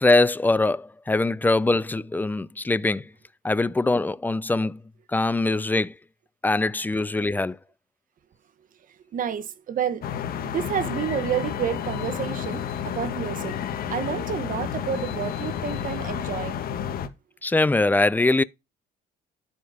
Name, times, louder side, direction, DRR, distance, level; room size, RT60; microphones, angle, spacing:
voice 1, 0.0-3.0 3.4-4.8 5.1-5.9 6.4-7.6 17.4-18.4, left 2 dB, 10° left, 0.5 m, -22 dB
voice 2, 9.1-10.1 10.4-13.6 13.9-16.6, right 9 dB, 55° right, 1.3 m, -29 dB
sound 1, 10.0-17.1, left 8 dB, 60° left, 1.7 m, -31 dB
11.5 x 5.2 x 5.0 m
cardioid pair, 110°, 17 cm